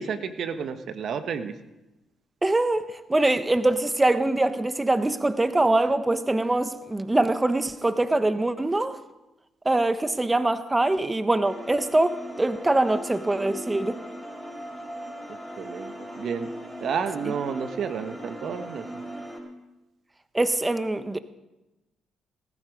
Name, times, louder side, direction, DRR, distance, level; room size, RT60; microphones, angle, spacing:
voice 1, 0.0-1.6 15.3-16.5 16.8-18.9, right 6 dB, 65° right, 1.2 m, -31 dB
voice 2, 2.4-9.0 9.6-14.0 20.3-21.2, right 2 dB, 20° right, 1.1 m, -23 dB
sound 1, 11.4-19.4, equal, ahead, 5.9 m, -39 dB
19.0 x 13.5 x 5.3 m
supercardioid pair, 55°, 0 cm